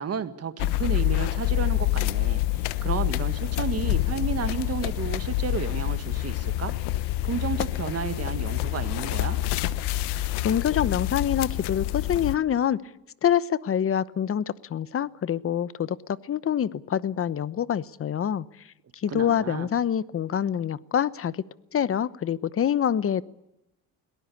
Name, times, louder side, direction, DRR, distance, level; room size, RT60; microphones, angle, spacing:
voice 1, 0.0-6.7 7.2-9.4 19.1-19.7, right 7 dB, 40° right, 10 dB, 1.9 m, -32 dB
sound 1, 0.6-12.4, left 15 dB, 85° left, 1.2 m, -27 dB
voice 2, 10.4-12.8 13.2-16.0 16.2-18.5 18.9-21.4 21.7-23.2, left 9 dB, 35° left, 17 dB, 1.0 m, -26 dB
22.5 x 18.5 x 8.6 m, 0.89 s
cardioid pair, 105°, 39 cm